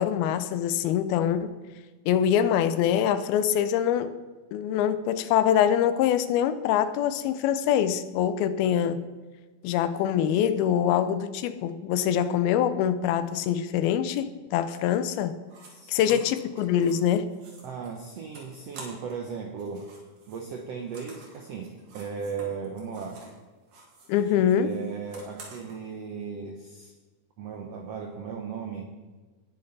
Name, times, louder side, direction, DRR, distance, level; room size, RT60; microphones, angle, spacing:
voice 1, 0.0-1.5 2.1-4.1 4.5-9.0 9.6-15.4 15.9-17.3 24.1-24.7, left 9 dB, 90° left, 12 dB, 2.6 m, -24 dB
sound 1, 15.5-15.7 16.0-19.3 19.5-23.4 23.7-25.8, right 3 dB, 60° right, 3.6 m, -49 dB
voice 2, 15.7-16.3 17.6-19.9 20.3-23.2 24.5-26.9 27.4-28.9, right 6 dB, 90° right, 2 dB, 1.4 m, -37 dB
18.5 x 6.8 x 4.0 m, 1.3 s
omnidirectional pair, 4.2 m